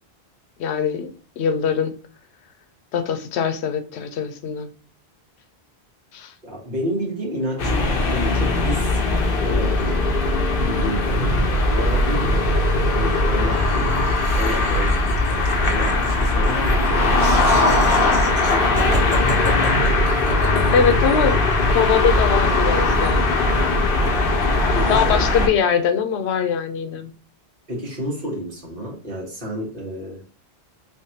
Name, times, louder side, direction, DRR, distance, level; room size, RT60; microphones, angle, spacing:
voice 1, 0.6-1.9 2.9-4.7 6.1-6.3 20.7-21.4 21.7-23.3 24.9-27.1, left 7 dB, 90° left, 0.9 m, -22 dB
voice 2, 6.4-10.0 10.6-12.5 12.9-15.0 15.3-20.7 24.0-25.3 27.7-30.2, equal, 55° right, 1.7 m, -31 dB
sound 1, 7.6-25.5, left 2 dB, 60° left, 0.9 m, -19 dB
Laughter, 13.5-21.1, right 1 dB, 80° right, 1.3 m, -35 dB
3.6 x 3.1 x 2.8 m
omnidirectional pair, 1.1 m